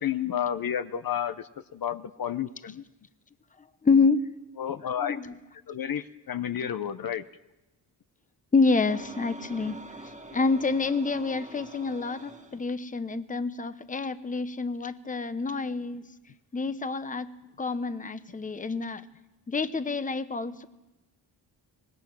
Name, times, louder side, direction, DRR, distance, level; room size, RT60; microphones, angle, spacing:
voice 1, 0.0-2.8 4.6-5.2 5.7-7.2, left 9 dB, 55° left, 11 dB, 0.8 m, -31 dB
voice 2, 3.8-4.3 5.0-5.3 8.5-9.8 10.3-16.0 16.5-17.3 17.6-19.1 19.5-20.6, left 4 dB, 20° left, 12 dB, 0.9 m, -27 dB
sound 1, 8.9-12.6, right 1 dB, 15° right, 1.6 m, -44 dB
25.0 x 20.0 x 6.2 m, 1.0 s
wide cardioid pair, 110°, 42 cm